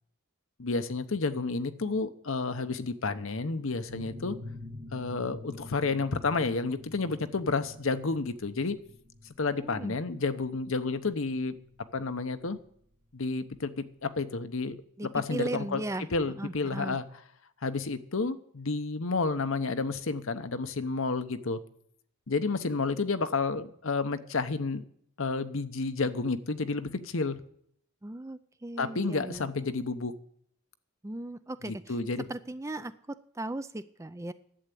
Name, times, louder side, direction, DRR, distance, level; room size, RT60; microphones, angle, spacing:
voice 1, 0.6-4.4 4.9-8.8 9.4-11.5 11.9-12.6 13.1-17.0 17.6-21.6 22.3-24.8 25.2-27.4 28.8-30.1 31.6-32.3, left 3 dB, 65° left, 11 dB, 0.9 m, -31 dB
sound 1, 3.9-13.3, left 1 dB, 55° right, 2.1 m, -46 dB
voice 2, 9.5-10.0 15.0-16.1 16.4-17.0 28.0-29.5 31.0-31.9 32.3-34.3, right 2 dB, 15° right, 12 dB, 0.4 m, -37 dB
11.5 x 8.0 x 9.9 m, 0.69 s
head